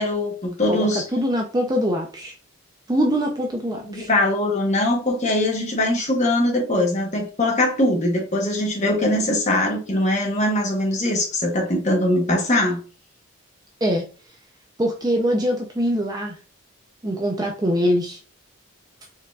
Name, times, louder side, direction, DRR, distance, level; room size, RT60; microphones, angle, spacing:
voice 1, 0.0-1.0 3.9-12.8, left 1 dB, 30° left, 0 dB, 1.1 m, -21 dB
voice 2, 0.7-2.3 2.9-4.1 13.8-14.1 14.8-16.4 17.0-18.2, equal, 15° right, 2 dB, 0.5 m, -23 dB
4.5 x 3.6 x 2.4 m, 0.35 s
head